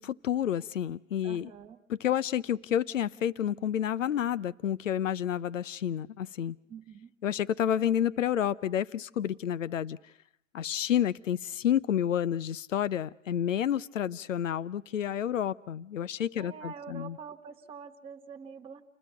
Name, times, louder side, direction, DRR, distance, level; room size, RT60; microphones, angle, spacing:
voice 1, 0.0-1.5 1.9-6.6 7.2-10.0 10.5-17.2, left 10 dB, 75° left, 18 dB, 0.8 m, -30 dB
voice 2, 1.2-1.8 6.7-7.1 16.4-18.8, right 6 dB, 15° right, 2 dB, 1.4 m, -45 dB
29.0 x 20.5 x 5.9 m, 0.73 s
hypercardioid pair, 130°, 38 cm